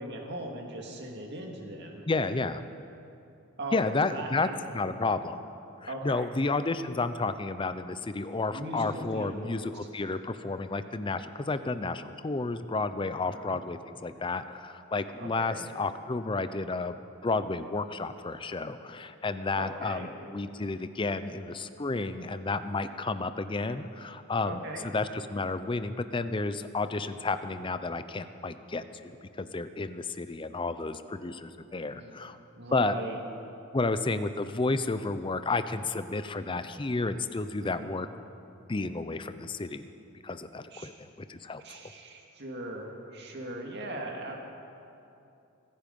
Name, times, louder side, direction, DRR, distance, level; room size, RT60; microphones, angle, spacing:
voice 1, 0.0-2.1 3.6-4.6 5.9-6.3 8.5-9.7 13.2-13.6 15.2-15.7 19.5-20.1 24.5-24.9 31.9-32.1 32.6-33.2 36.5-36.8 37.6-38.0 40.7-40.9 41.6-44.4, right 1 dB, 50° right, 1 dB, 2.1 m, -39 dB
voice 2, 2.1-2.6 3.7-5.4 5.8-17.0 17.2-32.4 32.7-33.0 33.7-38.1 38.7-39.9 40.2-41.6, left 3 dB, 20° left, 11 dB, 0.5 m, -31 dB
24.5 x 9.9 x 5.3 m, 2.7 s
head